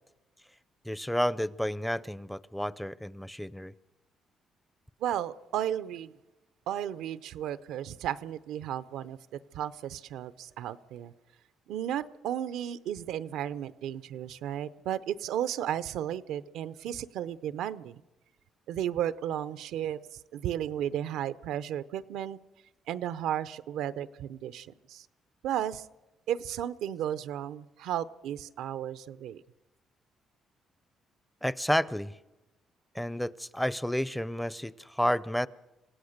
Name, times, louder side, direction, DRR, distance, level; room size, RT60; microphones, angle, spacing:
voice 1, 0.8-3.7 31.4-32.2 32.9-35.5, equal, 5° left, 19 dB, 0.6 m, -31 dB
voice 2, 5.0-6.2 6.7-9.2 9.5-11.1 11.7-18.0 18.7-22.4 22.9-25.1 25.4-25.9 26.3-29.4, right 10 dB, 85° right, 15 dB, 0.7 m, -34 dB
27.0 x 16.5 x 6.6 m, 1.0 s
cardioid pair, 90°, 0 cm